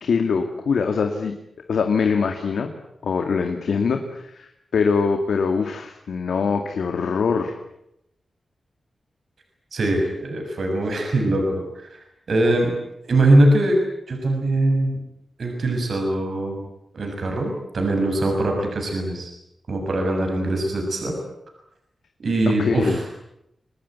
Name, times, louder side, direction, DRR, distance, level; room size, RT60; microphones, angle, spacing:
voice 1, 0.0-1.4 1.7-2.7 3.0-7.5 22.5-23.0, left 5 dB, 90° left, 5 dB, 2.2 m, -23 dB
voice 2, 9.7-12.0 12.3-12.7 13.1-13.8 14.1-15.0 15.4-16.6 16.9-19.3 19.7-21.1 22.2-23.1, right 1 dB, 60° right, 2 dB, 6.8 m, -21 dB
26.0 x 19.5 x 9.5 m, 0.82 s
wide cardioid pair, 105°, 0 cm